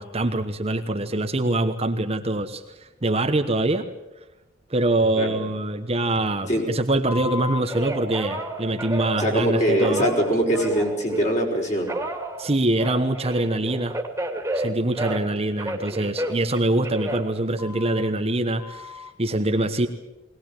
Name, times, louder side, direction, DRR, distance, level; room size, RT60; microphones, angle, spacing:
voice 1, 0.0-3.8 4.7-10.1 12.4-14.0 14.5-19.9, right 2 dB, 30° right, 6 dB, 1.1 m, -24 dB
Telephone, 7.1-11.4 11.9-15.3 15.6-18.1 18.6-19.1, right 1 dB, 15° right, 2.4 m, -32 dB
voice 2, 9.2-12.0, right 1 dB, 40° left, 0 dB, 5.4 m, -22 dB
21.5 x 19.0 x 8.9 m, 1.0 s
head